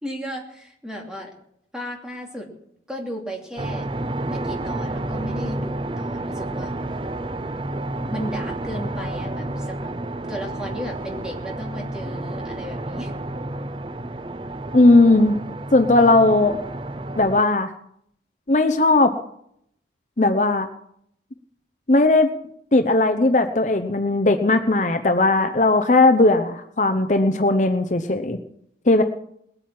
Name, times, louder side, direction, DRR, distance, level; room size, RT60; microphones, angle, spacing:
voice 1, 0.0-1.3 1.7-2.5 2.9-3.9 4.3-6.7 8.1-9.9 10.3-13.1, equal, 5° right, 0 dB, 2.8 m, -34 dB
sound 1, 3.6-17.4, right 1 dB, 30° right, 0.6 m, -30 dB
voice 2, 14.7-15.4 15.7-16.6 17.2-17.7 18.5-19.1 20.2-20.7 21.9-22.3 22.7-28.4 28.9-29.0, left 2 dB, 40° left, 8 dB, 0.8 m, -17 dB
20.0 x 9.0 x 7.6 m, 0.73 s
head